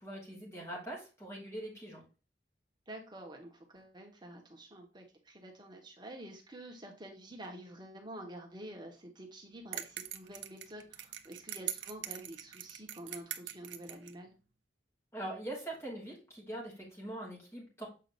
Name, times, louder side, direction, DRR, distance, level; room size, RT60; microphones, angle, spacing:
voice 1, 0.0-2.0 15.1-17.9, right 1 dB, 15° left, -4 dB, 3.1 m, -42 dB
voice 2, 2.9-14.3, right 1 dB, 25° right, 2 dB, 1.3 m, -48 dB
sound 1, 9.7-14.1, right 11 dB, 90° right, 0.7 m, -42 dB
7.7 x 5.0 x 2.6 m, 0.32 s
head